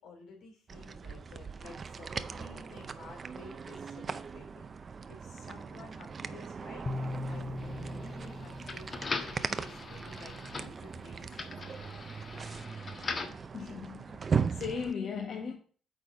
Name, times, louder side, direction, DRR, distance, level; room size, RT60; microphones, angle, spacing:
voice 1, 0.0-4.7 5.1-12.6, left 4 dB, 90° left, 3.0 m, -53 dB
sound 1, 0.7-14.9, right 5 dB, 40° right, 0.5 m, -39 dB
sound 2, 6.9-10.1, left 2 dB, 25° left, 0.5 m, -40 dB
sound 3, 7.6-13.5, left 4 dB, 40° left, 1.3 m, -41 dB
voice 2, 13.5-15.5, left 6 dB, 65° left, 1.2 m, -37 dB
8.8 x 4.0 x 5.2 m
cardioid pair, 90°, 0 cm